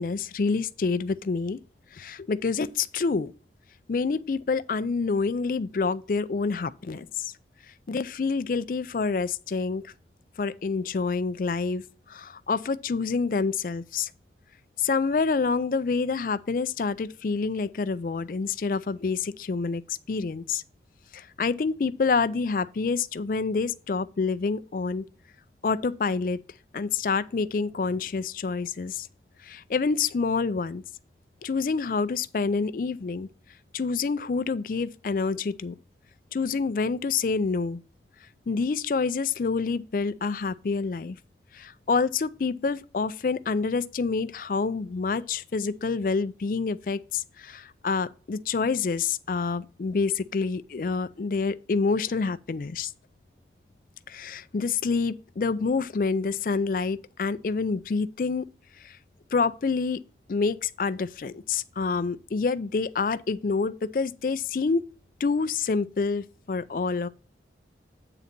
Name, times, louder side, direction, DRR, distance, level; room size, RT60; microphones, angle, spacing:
voice 1, 0.0-1.6 1.9-3.3 3.9-7.3 7.9-9.9 10.4-11.8 12.1-14.1 14.8-20.6 21.1-25.0 25.6-26.4 26.7-29.1 29.4-30.8 31.4-33.3 33.7-35.8 36.3-37.8 38.5-41.2 41.5-52.9 54.1-58.4 58.8-59.0 59.3-60.0 60.3-64.8 65.2-67.1, left 4 dB, 50° left, 0.4 m, -27 dB
8.4 x 3.9 x 5.8 m
head